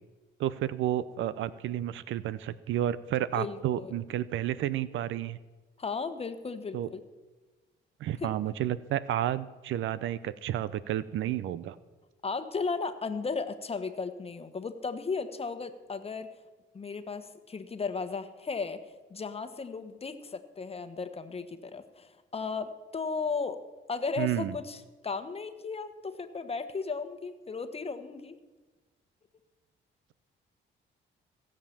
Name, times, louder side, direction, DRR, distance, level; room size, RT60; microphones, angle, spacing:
voice 1, 0.4-5.4 6.7-6.9 8.0-11.8 24.2-24.5, right 12 dB, 80° right, 17 dB, 0.6 m, -31 dB
voice 2, 3.3-3.9 5.8-7.0 8.2-8.3 12.2-16.3 16.7-18.8 19.1-23.6 23.9-28.4, left 4 dB, 30° left, 10 dB, 1.2 m, -35 dB
16.5 x 7.5 x 7.2 m, 1.2 s
cardioid pair, 90°, 20 cm